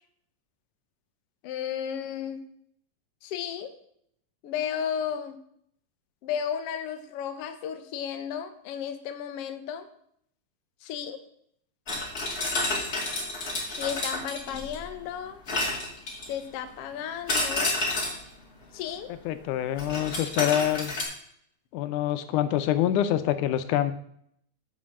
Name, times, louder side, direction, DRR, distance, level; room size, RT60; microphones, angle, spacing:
voice 1, 1.4-2.4 3.2-3.8 4.4-5.4 6.2-9.9 10.8-11.2 13.8-15.4 16.3-17.8 18.7-19.1, left 8 dB, 65° left, 8 dB, 1.6 m, -33 dB
sound 1, 11.9-14.9 15.5-16.5 17.3-18.3 19.8-21.0, left 2 dB, 30° left, 2.5 m, -30 dB
voice 2, 19.1-20.9 21.7-23.9, left 11 dB, 90° left, 11 dB, 2.2 m, -26 dB
7.5 x 5.6 x 7.1 m, 0.69 s
omnidirectional pair, 3.5 m